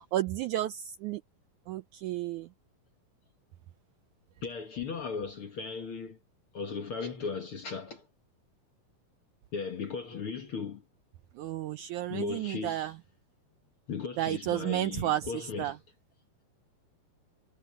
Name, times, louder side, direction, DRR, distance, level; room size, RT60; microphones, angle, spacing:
voice 1, 0.1-1.2 1.7-2.5 11.4-12.9 14.2-15.3 15.6-15.7, right 14 dB, 80° right, 1.8 m, -32 dB
voice 2, 4.4-6.2 6.5-8.1 9.5-10.8 12.1-13.0 13.9-15.8, left 5 dB, 50° left, 1.8 m, -37 dB
omnidirectional pair, 4.1 m